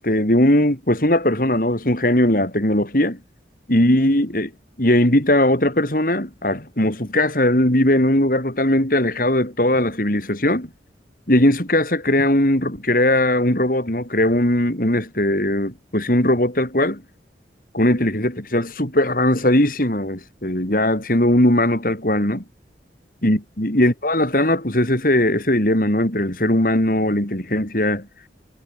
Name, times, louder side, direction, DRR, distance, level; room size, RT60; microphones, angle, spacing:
voice 1, 0.0-3.2 3.7-4.5 4.8-10.7 11.3-17.0 17.7-22.4 23.2-28.1, left 1 dB, 50° left, 4.3 m, -19 dB
head